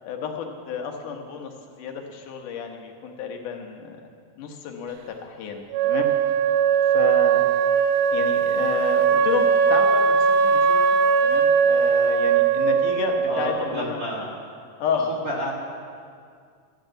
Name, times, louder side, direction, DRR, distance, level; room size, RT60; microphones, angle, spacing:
voice 1, 0.0-4.0 4.4-6.1 6.9-7.5 8.1-10.8 11.2-14.0 14.8-15.1, left 6 dB, 70° left, 3 dB, 2.7 m, -31 dB
Wind instrument woodwind instrument, 5.7-13.4, right 6 dB, 80° right, 2.2 m, -20 dB
voice 2, 13.3-14.3 15.2-15.5, equal, 35° right, -3 dB, 1.5 m, -29 dB
14.5 x 9.8 x 7.8 m, 2.2 s
omnidirectional pair, 3.9 m